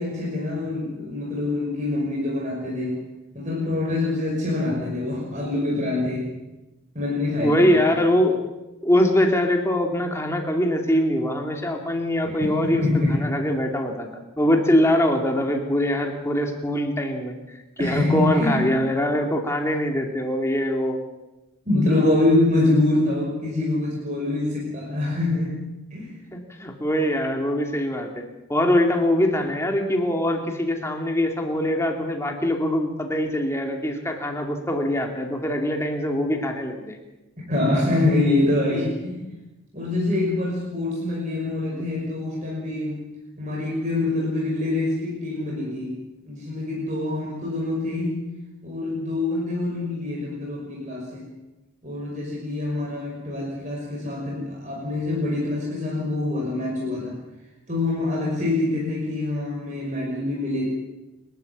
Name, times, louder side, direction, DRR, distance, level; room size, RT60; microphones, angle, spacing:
voice 1, 0.0-3.0 3.3-6.3 6.9-7.9 12.2-13.4 17.8-18.7 21.7-25.6 25.9-26.2 37.4-39.3 39.7-43.0 43.4-48.3 48.6-51.3 51.8-57.2 57.7-60.6, left 2 dB, 35° right, -2 dB, 5.8 m, -25 dB
voice 2, 7.4-8.4 8.8-12.8 13.1-17.4 17.8-21.0 26.3-28.2 28.5-37.0 41.7-41.9, left 1 dB, 10° left, 2 dB, 2.8 m, -23 dB
29.0 x 12.5 x 8.8 m, 1.0 s
head